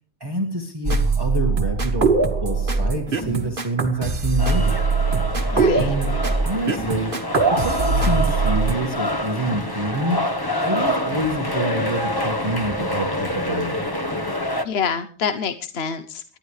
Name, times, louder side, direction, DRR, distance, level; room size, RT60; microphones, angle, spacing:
voice 1, 0.2-2.1 2.4-4.9 5.8-6.1 6.4-7.1 7.5-10.3 10.6-13.8, right 1 dB, 20° right, 2 dB, 1.9 m, -27 dB
sound 1, 0.8-8.7, right 4 dB, 50° right, 1.7 m, -21 dB
sound 2, 4.4-14.6, left 1 dB, 20° left, 1.1 m, -26 dB
voice 2, 5.5-5.9 14.6-16.2, left 6 dB, 65° left, 9 dB, 1.1 m, -26 dB
28.5 x 12.0 x 3.3 m, 0.42 s
omnidirectional pair, 1.2 m